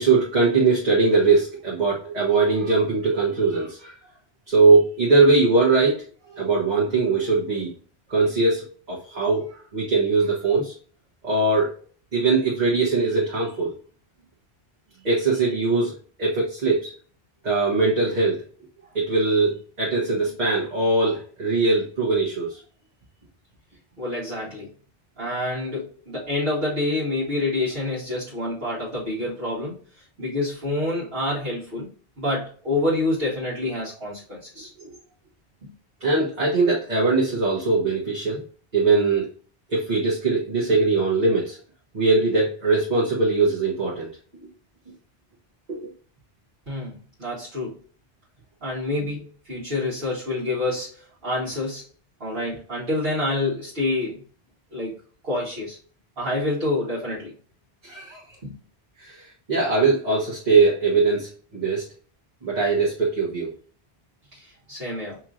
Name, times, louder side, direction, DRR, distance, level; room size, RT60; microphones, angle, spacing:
voice 1, 0.0-3.9 4.5-6.0 6.3-7.7 8.1-9.4 9.7-10.7 11.2-11.8 12.1-13.7 15.0-15.9 16.2-16.9 17.4-18.4 18.9-22.6 34.8-34.9 36.0-38.4 38.7-39.3 39.7-41.6 41.9-44.1 44.4-44.5 45.7-45.9 57.8-58.2 59.0-61.8 62.4-63.5, right 3 dB, 45° right, -5 dB, 1.3 m, -21 dB
voice 2, 24.0-24.7 25.2-29.8 30.2-31.9 32.2-34.7 46.7-47.8 48.6-51.9 52.2-54.2 54.7-54.9 55.2-55.8 56.2-57.3 58.4-58.5 64.3-65.2, left 2 dB, 65° right, -7 dB, 1.7 m, -27 dB
5.5 x 3.0 x 2.5 m, 0.41 s
omnidirectional pair, 1.1 m